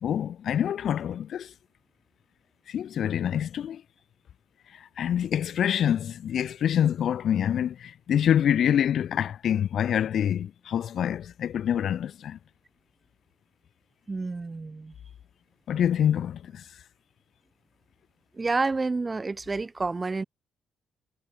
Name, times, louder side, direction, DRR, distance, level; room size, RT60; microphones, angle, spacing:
voice 1, 0.0-1.5 2.7-3.8 4.7-12.4 15.7-16.6, left 9 dB, 65° left, 1.1 m, -26 dB
voice 2, 14.1-14.9 18.3-20.2, right 3 dB, 25° right, 3.2 m, -29 dB
cardioid pair, 90°, 0 cm